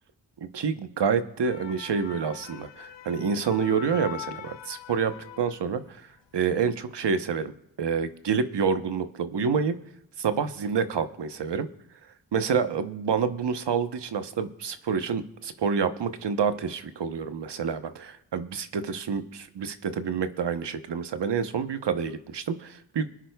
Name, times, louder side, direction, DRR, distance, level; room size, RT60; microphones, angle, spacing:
voice 1, 0.4-5.8 6.3-9.7 10.2-11.7 12.3-23.1, right 6 dB, 65° right, 10 dB, 1.0 m, -28 dB
sound 1, 1.2-6.0 6.3-6.6, left 11 dB, 70° left, 0.7 m, -43 dB
23.5 x 9.9 x 2.3 m, 0.82 s
cardioid pair, 40°, 45 cm